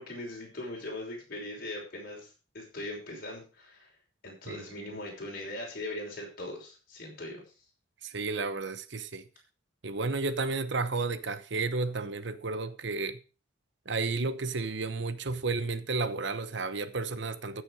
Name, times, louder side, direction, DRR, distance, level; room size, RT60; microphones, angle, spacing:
voice 1, 0.0-3.9 4.2-7.4, left 1 dB, 45° left, 5.8 m, -40 dB
voice 2, 4.5-4.9 8.0-9.3 9.8-13.2 13.8-17.6, right 3 dB, 60° right, 1.0 m, -32 dB
15.0 x 6.7 x 4.9 m
head